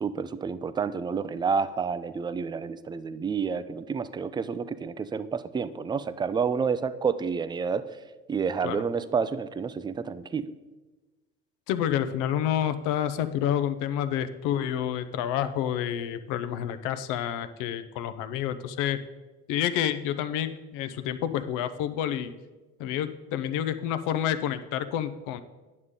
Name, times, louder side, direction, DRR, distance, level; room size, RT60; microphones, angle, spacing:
voice 1, 0.0-7.9 8.3-10.5, right 6 dB, 15° right, 14 dB, 0.3 m, -29 dB
voice 2, 11.7-19.0 19.5-22.3 22.8-25.4, left 10 dB, 70° left, 12 dB, 0.6 m, -29 dB
9.5 x 6.6 x 3.7 m, 1.2 s
supercardioid pair, 80°, 33 cm